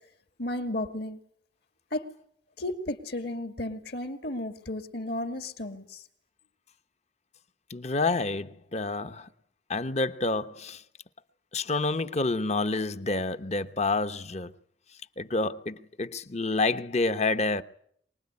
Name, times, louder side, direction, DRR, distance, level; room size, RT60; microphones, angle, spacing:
voice 1, 0.4-1.2 1.9-2.0 2.6-5.8, left 1 dB, 60° left, 2.4 m, -33 dB
voice 2, 7.7-9.3 9.7-10.8 11.5-14.5 15.2-17.6, left 3 dB, 35° left, 1.0 m, -28 dB
24.5 x 20.0 x 9.7 m
head